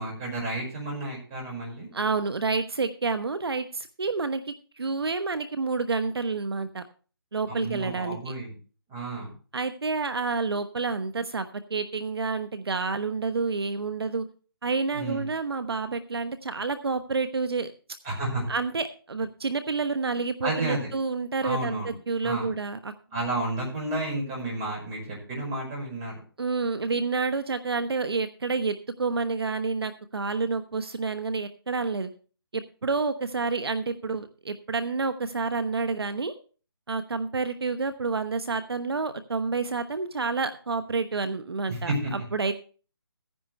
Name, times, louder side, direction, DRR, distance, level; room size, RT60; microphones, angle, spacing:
voice 1, 0.0-1.9 7.5-8.6 8.9-9.3 14.9-15.3 18.0-18.5 20.4-20.9 21.4-21.9 22.2-22.5 23.1-26.2 41.7-42.1, right 2 dB, 20° right, -3 dB, 5.5 m, -31 dB
voice 2, 1.9-6.8 7.3-8.3 9.5-14.2 14.6-17.7 18.5-22.9 26.4-32.1 32.5-36.3 36.9-42.5, right 4 dB, 80° right, 10 dB, 1.0 m, -29 dB
15.0 x 10.0 x 3.3 m, 0.38 s
hypercardioid pair, 165°, 13 cm